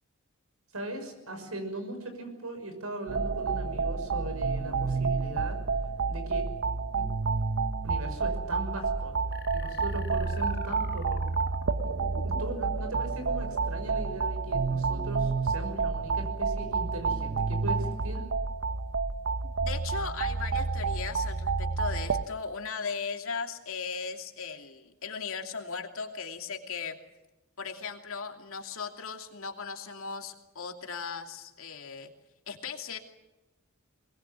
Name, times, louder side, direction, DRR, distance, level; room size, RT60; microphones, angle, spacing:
voice 1, 0.7-5.6 6.1-6.5 6.9-7.0 7.8-9.1 9.5-11.2 12.2-18.3, right 1 dB, 80° right, 7 dB, 6.1 m, -39 dB
sound 1, 3.1-22.2, right 4 dB, 60° right, 0.9 m, -30 dB
sound 2, 9.3-12.8, left 6 dB, 50° left, 1.2 m, -46 dB
voice 2, 19.4-27.0 27.6-32.1 32.5-33.0, left 5 dB, 70° left, 4 dB, 2.8 m, -37 dB
22.5 x 20.5 x 8.3 m, 1.0 s
head